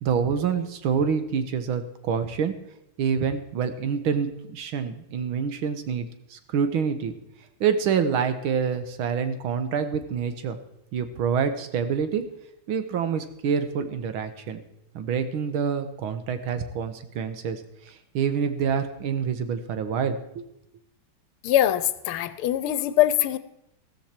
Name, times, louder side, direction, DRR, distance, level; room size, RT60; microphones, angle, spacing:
voice 1, 0.0-2.5 3.0-7.1 7.6-10.6 10.9-12.2 12.7-14.6 15.0-20.5, right 7 dB, 75° right, 10 dB, 1.9 m, -27 dB
voice 2, 21.4-23.4, left 12 dB, 80° left, 13 dB, 1.6 m, -22 dB
14.0 x 14.0 x 4.4 m, 0.80 s
omnidirectional pair, 2.4 m